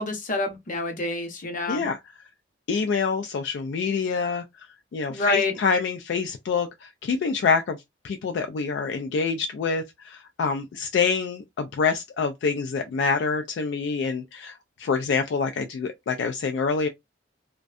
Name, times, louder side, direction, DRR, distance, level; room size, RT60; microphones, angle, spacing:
voice 1, 0.0-1.9 5.1-5.5, left 2 dB, 45° left, 0.7 m, -27 dB
voice 2, 1.7-2.0 2.7-4.7 4.9-7.8 8.0-16.9, left 5 dB, 70° left, 0.3 m, -26 dB
2.5 x 2.2 x 2.3 m
head